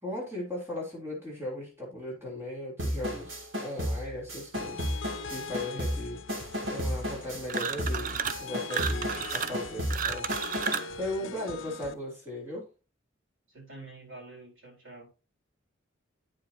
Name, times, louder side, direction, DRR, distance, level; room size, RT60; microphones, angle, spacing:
voice 1, 0.0-6.2 6.7-10.7 10.9-12.7, left 1 dB, 10° right, -4 dB, 3.8 m, -37 dB
sound 1, 2.8-10.9, equal, 75° right, 2.8 m, -34 dB
sound 2, 4.5-11.9, left 5 dB, 70° left, 0.7 m, -42 dB
sound 3, 7.5-8.4 8.7-10.9, right 7 dB, 40° right, 0.5 m, -32 dB
voice 2, 11.2-11.6 13.5-15.1, right 2 dB, 90° right, -4 dB, 4.4 m, -48 dB
9.2 x 7.6 x 2.9 m, 0.32 s
head